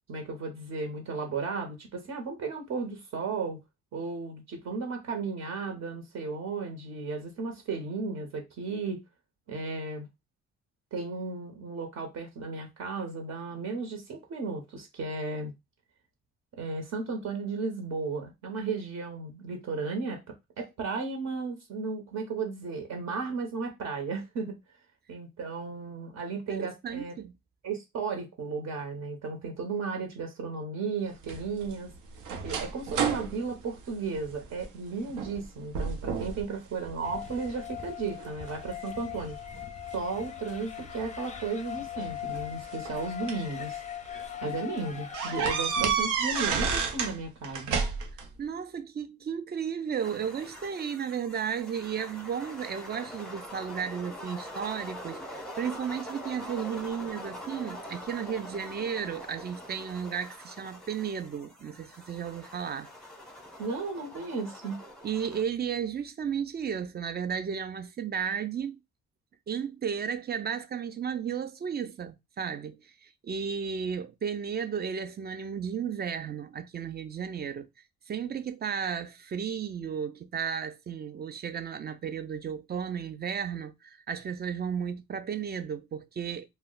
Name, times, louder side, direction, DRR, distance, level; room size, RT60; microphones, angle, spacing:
voice 1, 0.1-3.6 3.9-9.0 9.5-10.1 10.9-15.5 16.6-20.2 20.6-24.6 25.1-27.1 27.6-31.9 32.4-39.4 39.9-43.8 44.4-47.8 63.6-64.8, right 4 dB, 60° right, 0.9 m, -34 dB
voice 2, 26.5-27.3 48.4-62.9 65.0-68.8 69.5-77.7 78.1-86.5, right 7 dB, 35° right, 0.4 m, -34 dB
sound 1, 31.2-34.7 35.1-35.4 35.7-36.4 36.8-37.6 38.2-39.6 40.8-40.9 42.1-43.5 44.0-44.2 44.5-44.6 45.1-47.2 47.4-48.3, right 6 dB, 90° right, 0.7 m, -31 dB
sound 2, 37.0-45.9, left 10 dB, 25° left, 0.5 m, -40 dB
sound 3, 50.0-65.4, left 1 dB, ahead, 0.8 m, -44 dB
2.2 x 2.1 x 3.7 m
cardioid pair, 90°, 30 cm